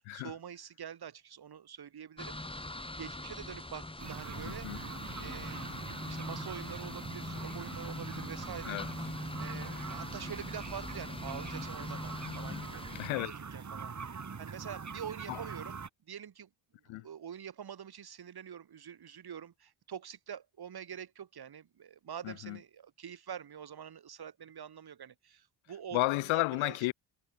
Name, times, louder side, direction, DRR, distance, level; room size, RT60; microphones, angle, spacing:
voice 1, 0.1-2.4 3.0-5.7 6.1-8.8 9.4-12.9 13.5-13.9 14.4-15.8 16.1-16.5 16.9-26.8, right 8 dB, 55° right, 4.1 m, -45 dB
sound 1, 2.2-13.1, left 2 dB, 10° left, 4.7 m, -42 dB
sound 2, 4.0-15.9, right 5 dB, 40° right, 6.3 m, -43 dB
voice 2, 4.4-4.8 8.6-8.9 12.3-12.6 12.9-13.3 15.3-15.4 16.9-17.1 22.2-22.6 25.9-26.9, left 21 dB, 90° left, 2.9 m, -33 dB
supercardioid pair, 70°, 46 cm